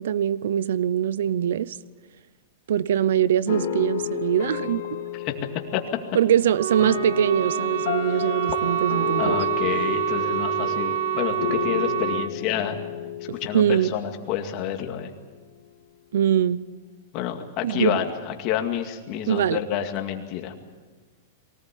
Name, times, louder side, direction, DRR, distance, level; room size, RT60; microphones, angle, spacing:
voice 1, 0.0-1.7 2.7-4.8 6.1-9.4 13.3-13.9 16.1-16.7 17.6-18.0 19.3-19.6, right 10 dB, 75° right, 0.7 m, -23 dB
sound 1, 3.5-14.6, left 10 dB, 55° left, 3.0 m, -32 dB
Wind instrument woodwind instrument, 6.5-12.3, right 9 dB, 50° right, 1.1 m, -27 dB
voice 2, 9.2-12.8 13.4-15.1 17.1-20.5, left 10 dB, 35° left, 2.1 m, -29 dB
23.0 x 18.5 x 8.3 m
supercardioid pair, 165°, 0 cm